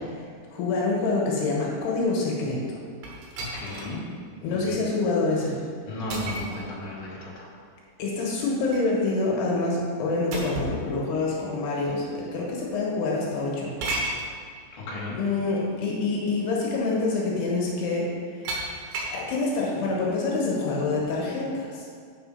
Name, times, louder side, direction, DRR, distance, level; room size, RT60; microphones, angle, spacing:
voice 1, 0.5-2.8 4.4-5.6 8.0-13.7 15.2-18.1 18.4-18.5 19.0-21.9, left 3 dB, 75° left, -3 dB, 3.3 m, -26 dB
sound 1, 3.0-4.0 4.5-4.6 6.1-6.6 8.3-8.9 10.3-10.8 11.8-11.9 13.8-14.3 15.7-15.8 16.2-16.5 18.4-19.2, right 2 dB, 70° right, 2.9 m, -33 dB
voice 2, 3.4-4.0 4.7-4.8 5.9-7.5 14.7-15.2, left 1 dB, 45° left, -6 dB, 2.0 m, -34 dB
7.6 x 5.6 x 5.6 m, 2.1 s
omnidirectional pair, 4.8 m